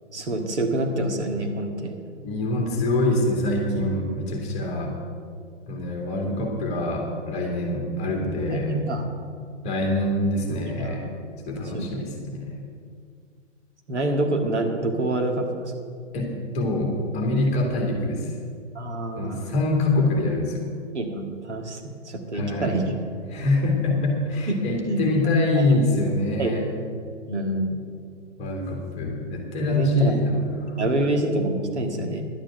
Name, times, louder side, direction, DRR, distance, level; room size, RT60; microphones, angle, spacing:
voice 1, 0.1-2.0 8.5-9.1 10.6-11.1 11.6-12.0 13.9-15.7 18.8-19.5 20.9-22.9 24.5-25.0 25.6-25.7 26.4-26.5 27.3-27.8 29.7-30.2 30.8-32.2, right 1 dB, 65° right, 3 dB, 1.9 m, -27 dB
voice 2, 2.2-5.0 5.7-8.8 9.6-11.1 11.5-12.6 16.1-16.3 16.5-18.3 19.2-20.7 22.3-22.8 23.3-26.6 28.4-30.8, left 1 dB, 20° left, 0 dB, 2.0 m, -24 dB
11.5 x 8.8 x 7.6 m, 2.1 s
figure-of-eight pair, 125°, 37 cm